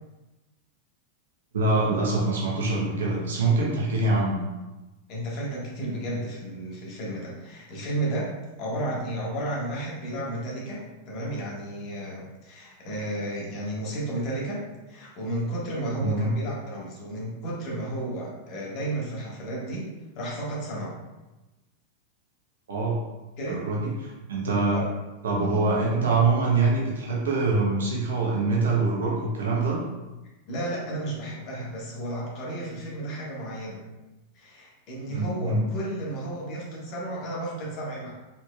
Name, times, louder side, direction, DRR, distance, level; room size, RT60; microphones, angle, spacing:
voice 1, 1.5-4.4 16.0-16.3 22.7-23.0 23.5-24.8 25.2-29.8 35.1-35.6, right 3 dB, 65° right, -3 dB, 1.0 m, -24 dB
voice 2, 5.1-8.3 8.6-19.9 20.2-21.0 23.4-23.6 24.7-24.9 30.5-33.8 34.3-38.1, right 1 dB, 40° left, -4 dB, 1.4 m, -33 dB
4.2 x 4.2 x 2.3 m, 1.1 s
figure-of-eight pair, 90°, 0 cm